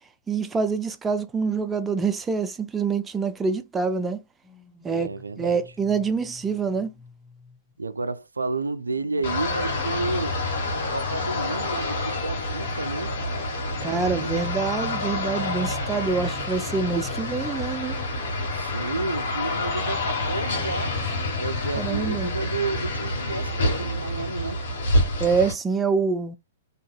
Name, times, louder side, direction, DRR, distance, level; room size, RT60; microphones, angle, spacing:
voice 1, 0.3-4.2 4.8-5.1 5.4-6.9 13.8-18.0 21.8-22.3 25.2-26.4, right 5 dB, 15° right, 0.4 m, -26 dB
sound 1, 4.4-8.0 8.6-11.9 12.9-18.1 18.4-18.7, right 2 dB, 15° left, 1.2 m, -47 dB
voice 2, 4.9-5.6 7.8-10.4 10.7-13.2 13.8-14.4 18.5-21.0 21.4-24.6, right 3 dB, 90° right, 0.3 m, -31 dB
sound 2, 9.2-25.5, left 2 dB, 60° left, 1.5 m, -28 dB
2.7 x 2.6 x 2.3 m
hypercardioid pair, 115°, 0 cm